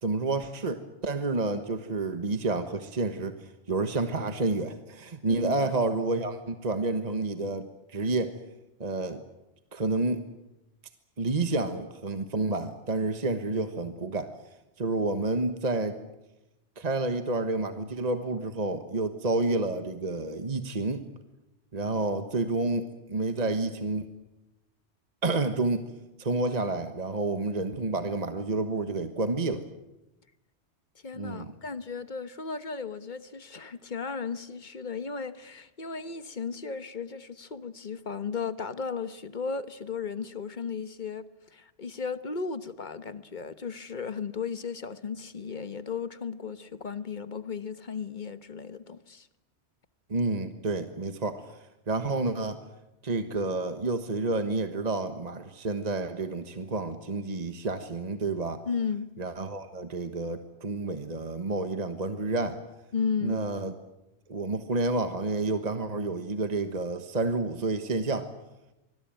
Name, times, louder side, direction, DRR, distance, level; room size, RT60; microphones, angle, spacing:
voice 1, 0.0-8.4 8.8-9.2 9.7-10.2 11.2-14.3 14.8-16.0 16.8-21.0 21.7-24.1 25.2-25.9 26.2-29.7 31.1-31.5 50.1-52.6 53.0-58.6 59.2-62.6 63.2-63.7 64.3-68.3, right 3 dB, 35° right, 1.4 m, -29 dB
voice 2, 5.3-5.7 31.0-49.3 58.6-59.1 62.9-63.4, left 5 dB, 45° left, 1.3 m, -35 dB
25.5 x 20.5 x 9.1 m
omnidirectional pair, 1.2 m